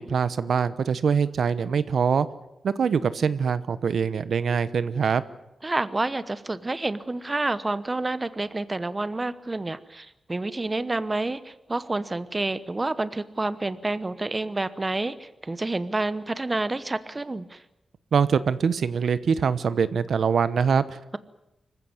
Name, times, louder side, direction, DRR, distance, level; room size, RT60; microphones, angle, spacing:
voice 1, 0.0-2.3 2.6-5.2 18.1-21.0, right 6 dB, 70° right, 14 dB, 1.0 m, -23 dB
voice 2, 5.6-17.6, right 2 dB, 20° right, 14 dB, 1.0 m, -29 dB
25.5 x 15.5 x 9.6 m, 0.89 s
wide cardioid pair, 125°, 0 cm